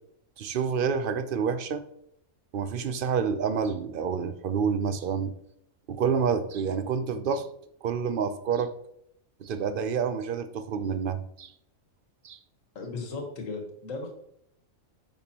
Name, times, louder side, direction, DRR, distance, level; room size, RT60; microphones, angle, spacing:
voice 1, 0.4-1.8 2.5-5.3 5.9-7.5 7.8-8.7 9.4-11.5 12.2-12.4, right 6 dB, 55° right, 10 dB, 0.6 m, -28 dB
voice 2, 12.8-14.1, left 3 dB, 65° left, 3 dB, 1.7 m, -36 dB
8.9 x 6.4 x 2.9 m, 0.73 s
omnidirectional pair, 1.5 m